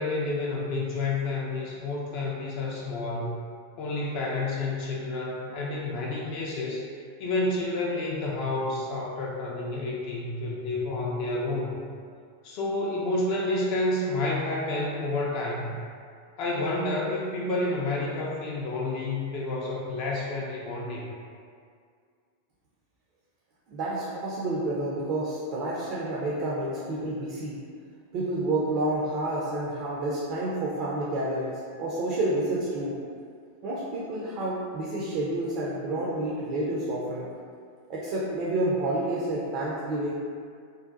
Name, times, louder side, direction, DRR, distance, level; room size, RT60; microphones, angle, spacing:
voice 1, 0.0-3.4 3.8-6.9 7.2-11.8 12.4-15.7 16.4-21.1, left 2 dB, 45° left, -3 dB, 0.3 m, -29 dB
voice 2, 23.7-27.6 28.1-33.0 33.6-37.3 37.9-40.1, right 1 dB, 45° right, -5 dB, 0.4 m, -29 dB
2.6 x 2.2 x 2.3 m, 2.2 s
figure-of-eight pair, 90°, 0 cm